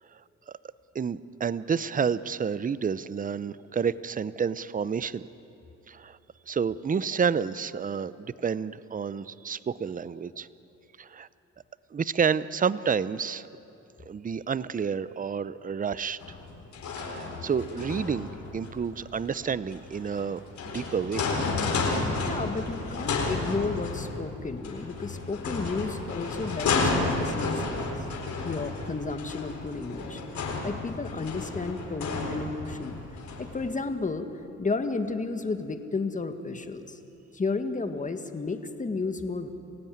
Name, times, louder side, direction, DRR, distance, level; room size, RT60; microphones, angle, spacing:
voice 1, 0.9-5.2 5.9-6.2 6.5-10.5 11.0-11.3 11.9-13.5 14.1-16.2 17.0-20.4 20.7-21.3, right 6 dB, 25° right, 16 dB, 0.7 m, -29 dB
sound 1, 16.2-33.7, left 3 dB, 65° left, 4.2 m, -32 dB
voice 2, 22.2-28.0 28.4-33.0 33.4-34.3 34.6-37.0 37.3-39.5, left 3 dB, 25° left, 7 dB, 1.9 m, -32 dB
28.0 x 16.0 x 9.4 m, 2.8 s
cardioid pair, 90°, 30 cm